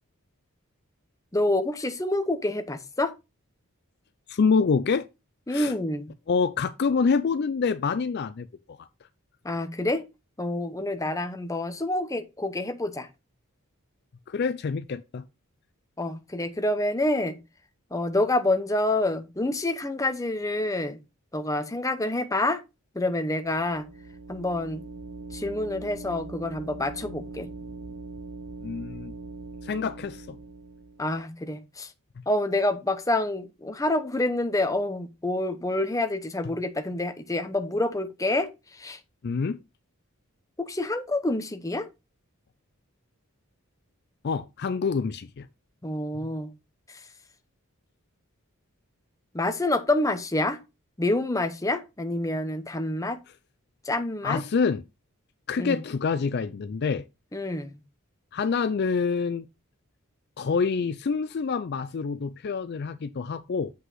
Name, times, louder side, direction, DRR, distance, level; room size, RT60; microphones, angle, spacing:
voice 1, 1.3-3.1 5.5-6.1 9.4-10.0 10.4-13.1 16.0-17.4 17.9-21.0 21.3-22.6 22.9-23.8 24.3-24.8 25.3-27.5 31.0-31.9 32.3-39.0 40.6-41.9 45.8-46.5 46.9-47.0 49.3-50.6 51.0-53.2 53.8-54.4 55.6-55.8 57.3-57.8, left 2 dB, 15° left, 0.7 m, -27 dB
voice 2, 4.3-5.1 5.5-5.7 6.3-8.8 14.3-15.2 28.6-29.1 29.6-30.4 39.2-39.6 44.2-45.5 54.2-54.8 55.5-57.1 58.3-59.5 60.4-63.7, left 5 dB, 50° left, 0.4 m, -26 dB
sound 1, 23.4-31.2, right 3 dB, 90° right, 0.9 m, -41 dB
8.0 x 5.3 x 3.8 m
head